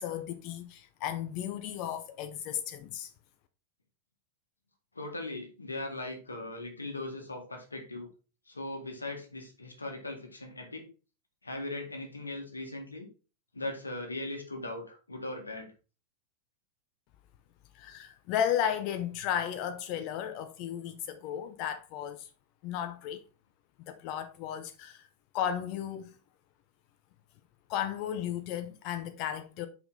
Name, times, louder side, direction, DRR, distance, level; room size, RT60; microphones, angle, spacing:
voice 1, 0.0-3.1 17.7-22.3 22.6-23.2 23.9-25.1 25.3-26.1 27.7-29.7, left 10 dB, 45° left, 0.7 m, -34 dB
voice 2, 5.0-8.1 8.5-10.9 11.4-13.1 13.5-15.7, left 2 dB, 80° left, 1.8 m, -39 dB
5.9 x 5.2 x 4.0 m
figure-of-eight pair, 90°, 0 cm